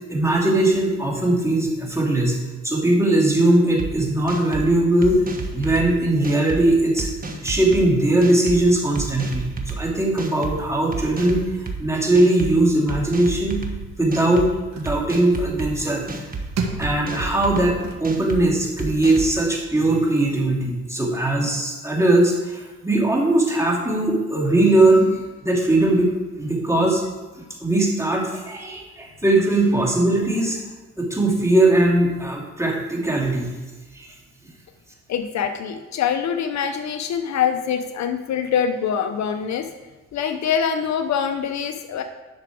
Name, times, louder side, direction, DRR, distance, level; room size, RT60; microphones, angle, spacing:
voice 1, 0.1-2.4 2.6-5.2 5.5-7.1 7.4-13.6 14.0-16.1 16.8-26.1 26.4-27.0 27.3-30.6 31.0-33.5 33.9-34.1, right 1 dB, 10° right, -2 dB, 2.5 m, -20 dB
sound 1, 3.8-3.9 4.3-4.7 5.0-5.9 6.2-6.6 7.0-7.8 8.2-8.6 8.9-9.8 10.2-10.5 10.9-11.8 12.1-12.5 12.9-13.7 14.1-14.5 14.8-15.7 16.1-16.4 16.8-17.7 18.0-18.4 18.8-19.3, right 3 dB, 30° right, 1.3 m, -30 dB
sound 2, 13.7-18.9, right 4 dB, 60° right, 1.4 m, -35 dB
voice 2, 35.1-39.7 40.1-42.0, left 7 dB, 65° left, 8 dB, 0.7 m, -24 dB
10.5 x 6.0 x 4.7 m, 1.2 s
cardioid pair, 90°, 30 cm